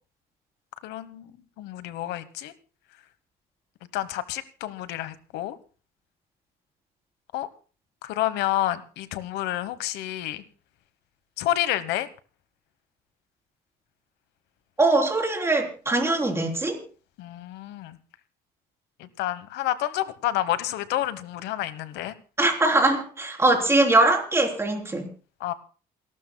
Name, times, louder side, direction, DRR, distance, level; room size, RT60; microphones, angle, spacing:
voice 1, 0.8-1.3 1.6-2.5 3.9-5.6 7.3-7.5 8.0-10.4 11.4-12.1 17.2-18.0 19.0-22.1 25.4-25.5, left 13 dB, 85° left, 14 dB, 1.2 m, -29 dB
voice 2, 14.8-16.8 22.4-25.1, right 2 dB, 15° right, 2 dB, 3.7 m, -22 dB
28.0 x 12.5 x 2.3 m, 0.36 s
cardioid pair, 110°, 17 cm